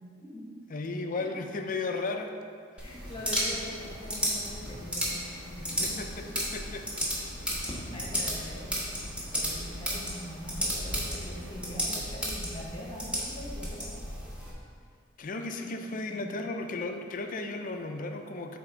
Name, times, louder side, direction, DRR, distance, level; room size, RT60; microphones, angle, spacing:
voice 1, 0.2-0.5 1.1-1.3 2.8-6.4 7.6-8.8 9.1-13.9 15.6-16.3, left 1 dB, 25° left, -3 dB, 1.0 m, -43 dB
voice 2, 0.7-2.3 5.8-6.8 15.2-18.6, left 3 dB, 40° left, 5 dB, 0.5 m, -35 dB
sound 1, 2.8-14.5, equal, 5° right, 1.1 m, -34 dB
sound 2, 2.9-11.9, equal, 70° right, 1.1 m, -50 dB
7.7 x 3.4 x 4.5 m, 2.3 s
head